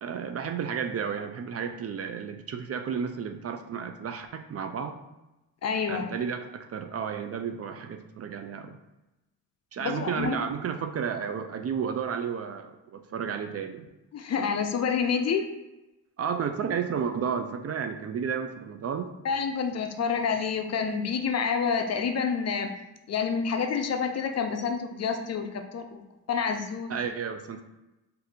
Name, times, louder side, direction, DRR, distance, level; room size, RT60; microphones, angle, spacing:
voice 1, 0.0-5.0 5.9-8.8 9.7-13.9 16.2-19.1 26.9-27.6, right 7 dB, 40° right, 7 dB, 0.4 m, -32 dB
voice 2, 5.6-6.1 9.8-10.5 14.1-15.5 19.2-22.7 23.1-26.0 26.3-26.9, left 6 dB, 45° left, 6 dB, 0.5 m, -28 dB
2.7 x 2.5 x 4.2 m, 0.97 s
supercardioid pair, 65°, 38 cm